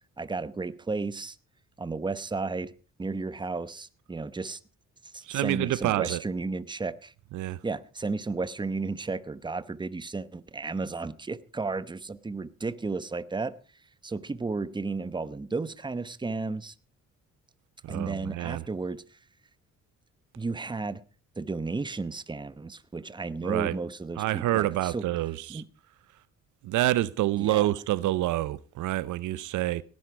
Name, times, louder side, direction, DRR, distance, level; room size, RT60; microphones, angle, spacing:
voice 1, 0.2-1.4 1.8-2.7 3.0-4.6 5.1-7.1 7.6-13.5 14.0-16.7 17.9-19.2 20.4-21.0 21.4-25.0 25.5-25.6 27.4-27.7, right 3 dB, 15° right, 0.9 m, -33 dB
voice 2, 5.3-6.2 7.3-7.6 17.9-18.6 23.4-23.7 24.2-25.6 26.6-29.8, right 15 dB, 80° right, 0.7 m, -27 dB
17.5 x 11.0 x 4.7 m
cardioid pair, 90°, 30 cm